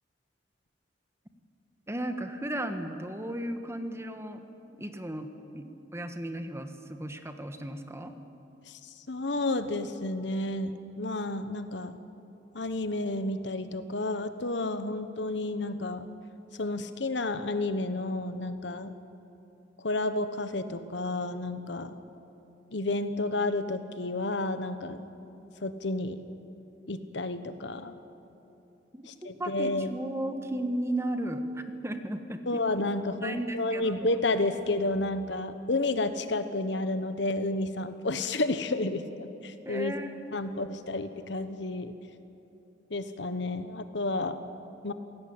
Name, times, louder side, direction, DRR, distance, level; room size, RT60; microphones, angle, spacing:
voice 1, 1.9-4.4 4.8-8.1 28.9-32.6 33.1-34.1 39.6-40.6, right 1 dB, 15° right, 7 dB, 1.5 m, -35 dB
voice 2, 9.1-11.9 12.5-16.1 16.6-19.0 19.8-22.0 22.7-25.1 25.6-26.2 26.9-28.0 29.1-29.9 32.5-39.9 40.3-41.9 42.9-44.4 44.8-44.9, left 2 dB, 70° left, 10 dB, 1.3 m, -31 dB
27.5 x 17.5 x 8.8 m, 2.8 s
head